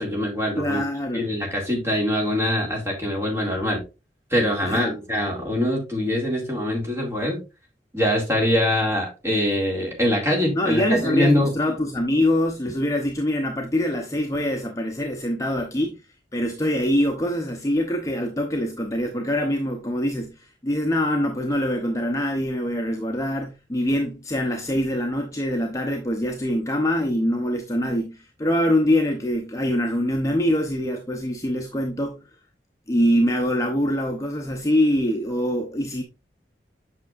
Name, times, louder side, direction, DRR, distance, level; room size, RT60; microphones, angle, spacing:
voice 1, 0.0-0.8 1.1-3.8 4.3-7.4 7.9-11.5, left 1 dB, 15° right, 2.3 m, -23 dB
voice 2, 0.6-1.3 4.6-5.0 10.5-16.0 16.3-32.2 32.9-36.0, left 1 dB, 20° left, 0.7 m, -24 dB
8.3 x 6.0 x 2.5 m
head